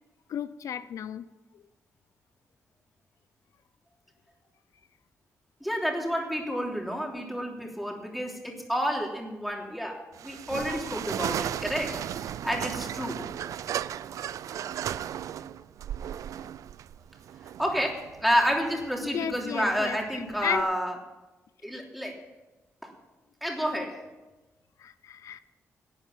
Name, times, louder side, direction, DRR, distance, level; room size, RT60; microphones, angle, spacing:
voice 1, 0.3-1.3 19.1-20.7 24.8-25.4, left 9 dB, 75° left, 0.5 m, -34 dB
voice 2, 5.6-13.2 17.6-20.9 21.6-22.2 22.8-22.9 23.4-24.0, equal, ahead, 3.3 m, -30 dB
sound 1, 10.1-20.6, right 10 dB, 80° right, 0.4 m, -36 dB
12.0 x 8.7 x 8.7 m
cardioid pair, 90°, 6 cm